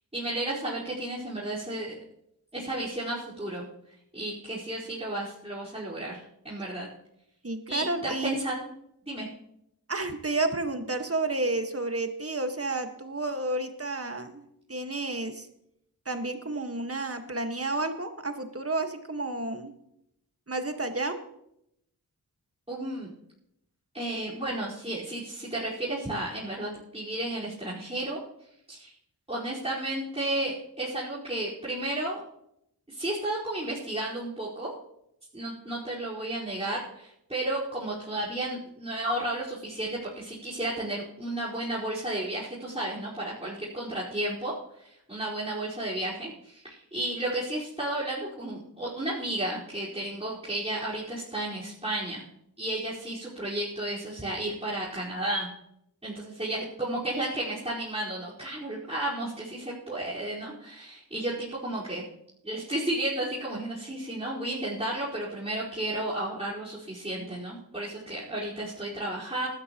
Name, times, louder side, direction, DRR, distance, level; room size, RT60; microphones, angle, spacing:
voice 1, 0.1-2.0 2.5-3.6 4.1-6.9 7.7-8.5 9.1-9.3 22.7-23.1 23.9-28.2 28.7-28.9 29.3-32.2 32.9-34.7 35.3-52.2 52.6-55.5 56.0-62.0 62.4-69.5, right 1 dB, 15° right, -9 dB, 4.9 m, -33 dB
voice 2, 7.4-8.4 9.9-14.4 14.7-15.5 16.1-19.7 20.5-21.2, right 2 dB, 35° right, 6 dB, 1.7 m, -31 dB
19.5 x 12.5 x 3.1 m, 0.78 s
cardioid pair, 45°, 39 cm